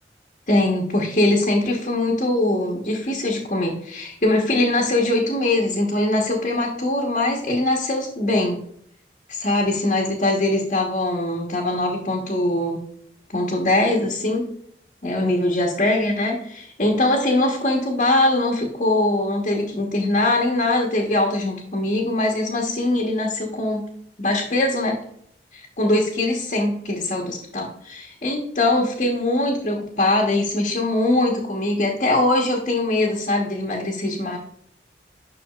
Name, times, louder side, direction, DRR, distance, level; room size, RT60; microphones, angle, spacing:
voice 1, 0.5-8.6 9.3-12.8 13.3-14.4 15.0-23.8 24.2-25.0 25.5-34.4, left 2 dB, 45° left, 0 dB, 1.2 m, -22 dB
10.0 x 6.2 x 2.4 m, 0.67 s
head